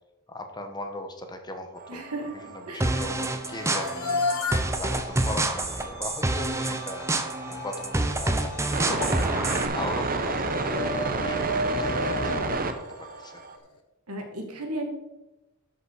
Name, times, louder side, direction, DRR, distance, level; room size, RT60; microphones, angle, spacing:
voice 1, 0.3-2.0 2.3-12.6 13.0-13.3, left 1 dB, 20° left, 5 dB, 1.1 m, -38 dB
sound 1, 1.8-13.6, right 3 dB, 40° right, 0.9 m, -33 dB
voice 2, 1.9-2.3 2.7-3.0 14.1-14.9, right 1 dB, 80° right, 3 dB, 2.2 m, -34 dB
sound 2, 2.8-9.7, right 2 dB, 15° right, 0.7 m, -28 dB
sound 3, 3.5-13.6, left 2 dB, 90° left, 1.3 m, -34 dB
12.5 x 5.7 x 4.8 m, 1.0 s
head